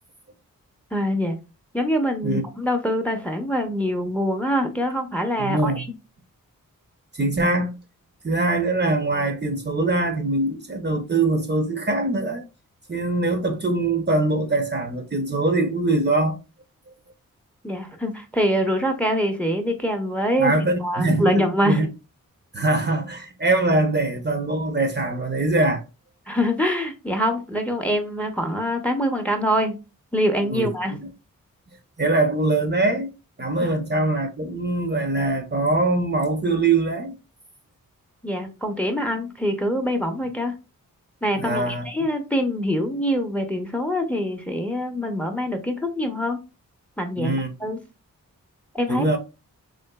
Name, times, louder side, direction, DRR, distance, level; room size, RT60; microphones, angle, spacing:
voice 1, 0.9-1.4 1.7-5.9 17.6-20.5 20.8-21.8 26.3-29.8 30.1-31.0 33.6-33.7 38.2-40.5 41.2-46.4 47.0-47.3 47.6-47.8 48.7-49.0, equal, 5° left, 0.7 m, -24 dB
voice 2, 5.4-5.8 7.2-7.7 8.2-12.4 12.9-16.4 20.4-21.9 22.5-25.8 30.5-30.7 32.0-33.1 33.4-37.1 41.4-41.8 47.2-47.5 48.9-49.2, right 2 dB, 30° right, 0.7 m, -22 dB
3.8 x 2.5 x 2.2 m
cardioid pair, 45°, 34 cm